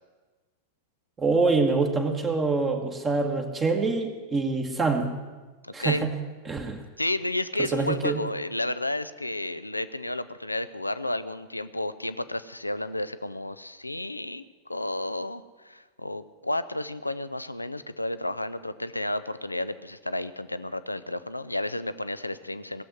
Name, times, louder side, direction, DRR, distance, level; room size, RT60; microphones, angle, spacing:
voice 1, 1.2-5.1 5.7-6.1 6.5-6.8 7.6-8.2, right 3 dB, 20° right, 3 dB, 1.4 m, -25 dB
voice 2, 5.6-6.1 7.0-22.8, left 1 dB, 85° left, 13 dB, 0.6 m, -32 dB
17.5 x 7.7 x 9.6 m, 1.3 s
figure-of-eight pair, 90°, 0 cm